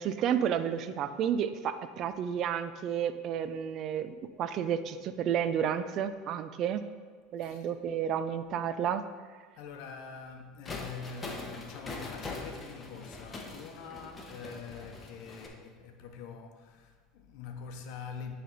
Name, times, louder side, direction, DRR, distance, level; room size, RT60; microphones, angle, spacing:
voice 1, 0.0-6.8 7.3-9.0, right 8 dB, 50° right, 0.4 m, -31 dB
voice 2, 7.4-7.7 9.6-18.4, left 6 dB, 65° left, 0.8 m, -45 dB
sound 1, 10.6-15.5, left 3 dB, 25° left, 1.0 m, -42 dB
9.9 x 3.4 x 3.9 m
supercardioid pair, 95°, 0 cm